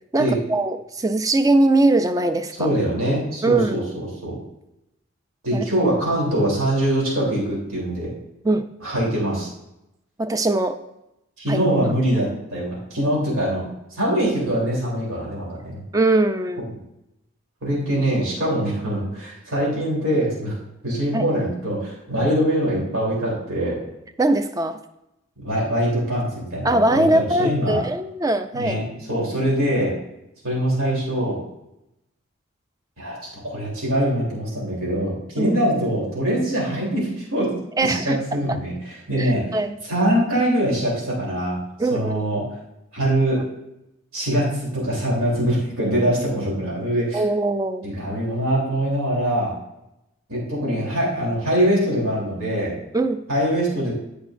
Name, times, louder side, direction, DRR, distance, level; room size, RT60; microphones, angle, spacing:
voice 1, 0.1-2.7 3.4-3.9 5.5-5.7 8.4-8.7 10.2-10.8 11.5-11.6 15.9-16.7 21.1-21.3 24.2-24.8 26.6-28.8 35.4-35.6 37.8-38.2 38.5-38.6 39.2-39.8 41.8-42.3 47.1-47.9 52.9-53.2, right 2 dB, 15° right, 10 dB, 0.4 m, -21 dB
voice 2, 2.6-3.8 4.2-4.3 5.4-8.1 8.8-9.5 11.4-13.6 13.9-15.8 17.6-20.6 20.8-23.8 25.4-27.8 28.5-28.8 29.1-30.0 30.4-31.4 33.0-33.2 33.4-37.5 37.8-39.6 39.9-42.4 42.9-43.4 44.1-47.2 47.8-49.5 50.3-52.7 53.3-53.9, right 1 dB, 80° right, -5 dB, 3.3 m, -23 dB
15.5 x 5.1 x 2.5 m, 0.88 s
head